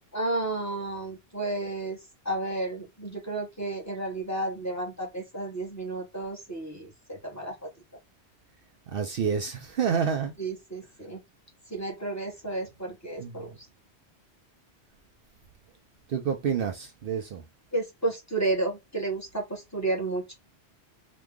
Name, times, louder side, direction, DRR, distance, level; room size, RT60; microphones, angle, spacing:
voice 1, 0.1-2.0 2.2-7.7 10.4-11.2 11.7-13.5 17.7-20.3, right 2 dB, 15° left, 1.1 m, -32 dB
voice 2, 8.9-10.3 13.2-13.5 16.1-17.4, right 7 dB, 65° right, 0.7 m, -28 dB
3.0 x 2.3 x 3.4 m
omnidirectional pair, 1.1 m